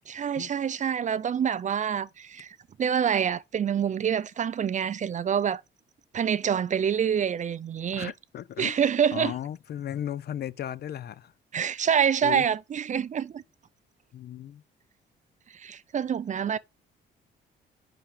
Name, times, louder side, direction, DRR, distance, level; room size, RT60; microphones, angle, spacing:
voice 1, 0.1-5.6 6.1-8.1 8.6-9.3 11.5-13.4 15.5-16.6, right 8 dB, 40° right, 0.4 m, -26 dB
voice 2, 7.9-11.3 12.2-12.5 14.1-14.6, left 10 dB, 55° left, 0.5 m, -36 dB
5.6 x 5.1 x 5.0 m
cardioid pair, 90°, 20 cm